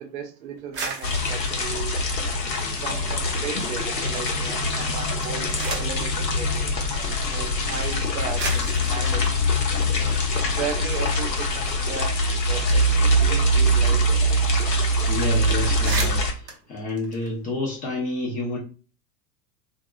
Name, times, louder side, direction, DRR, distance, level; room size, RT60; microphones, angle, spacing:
voice 1, 0.0-1.9 2.8-6.7 7.2-9.4 10.6-14.2, right 7 dB, 55° right, 4 dB, 0.7 m, -35 dB
sound 1, 0.6-3.1 3.5-4.2 5.0-6.1 7.1-7.2 7.9-8.0 8.4-10.7 11.0-11.1 11.4-14.0 14.3-14.4 14.7-14.9 15.3-15.4 15.6-17.8, right 4 dB, 20° right, 0.6 m, -37 dB
sound 2, 1.0-16.3, equal, 85° left, 0.8 m, -23 dB
voice 2, 15.1-18.6, left 2 dB, 15° left, -2 dB, 0.5 m, -29 dB
2.7 x 2.3 x 2.3 m, 0.35 s
hypercardioid pair, 100°, 49 cm